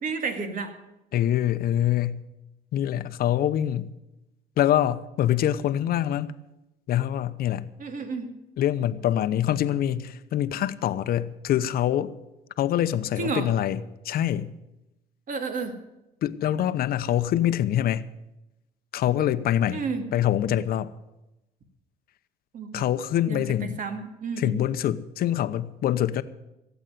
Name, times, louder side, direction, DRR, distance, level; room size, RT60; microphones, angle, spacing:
voice 1, 0.0-0.7 7.8-8.3 13.2-13.5 15.3-15.8 19.7-20.1 22.5-22.8 23.3-24.6, right 4 dB, 50° right, 7 dB, 2.4 m, -31 dB
voice 2, 1.1-2.2 2.7-3.9 4.6-6.3 6.9-7.7 8.6-12.1 12.6-14.5 16.2-18.1 18.9-19.8 20.1-20.9 22.7-23.8 24.4-26.2, left 11 dB, 65° left, 13 dB, 0.8 m, -25 dB
16.5 x 8.2 x 9.3 m, 0.95 s
cardioid pair, 110°, 17 cm